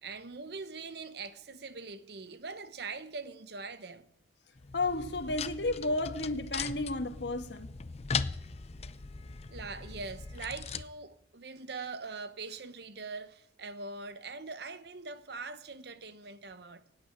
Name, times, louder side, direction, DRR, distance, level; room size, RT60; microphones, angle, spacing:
voice 1, 0.0-4.1 9.5-16.8, right 4 dB, 65° right, 0.9 m, -42 dB
sound 1, 4.6-10.8, left 5 dB, 35° left, 0.6 m, -39 dB
voice 2, 4.7-7.7, left 2 dB, 75° left, 1.5 m, -32 dB
16.5 x 9.0 x 9.0 m
head